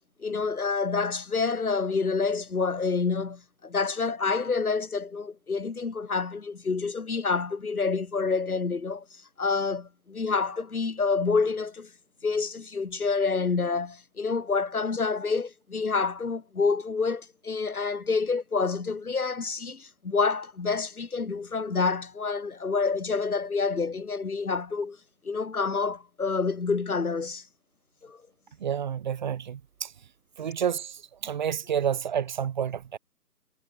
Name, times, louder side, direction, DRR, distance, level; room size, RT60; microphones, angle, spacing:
voice 1, 0.2-11.9 12.2-25.0 25.2-27.4 28.0-28.2, left 4 dB, 60° left, 7.6 m, -28 dB
voice 2, 28.6-29.9 30.4-33.0, right 8 dB, 25° right, 3.8 m, -29 dB
figure-of-eight pair, 165°, 50 cm